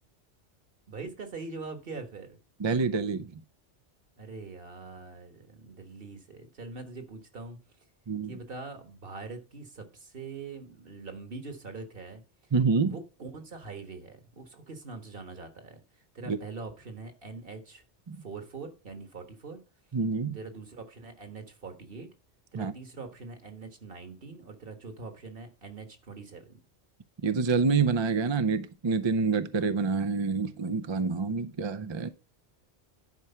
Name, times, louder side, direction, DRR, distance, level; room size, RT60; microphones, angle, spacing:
voice 1, 0.9-2.4 4.2-7.6 8.3-12.2 12.8-17.8 18.2-19.6 20.3-22.1 22.5-26.6, right 3 dB, 55° right, 1.6 m, -43 dB
voice 2, 2.6-3.3 8.1-8.3 12.5-12.9 16.3-16.4 18.1-18.2 19.9-20.4 22.5-22.7 27.2-32.1, right 4 dB, 35° right, 0.4 m, -27 dB
11.0 x 4.8 x 5.6 m
omnidirectional pair, 1.2 m